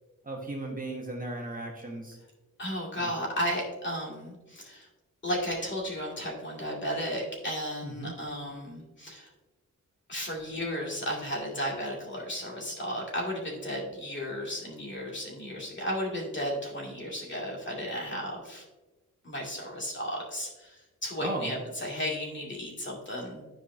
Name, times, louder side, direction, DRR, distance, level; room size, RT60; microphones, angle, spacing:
voice 1, 0.3-2.2 3.0-3.1 7.8-8.1 21.2-21.5, right 2 dB, 25° right, 0 dB, 1.1 m, -36 dB
voice 2, 2.6-4.9 5.2-9.3 10.1-18.6 19.2-23.4, equal, 35° left, -3 dB, 2.3 m, -34 dB
10.5 x 4.9 x 2.7 m, 1.1 s
wide cardioid pair, 110°, 33 cm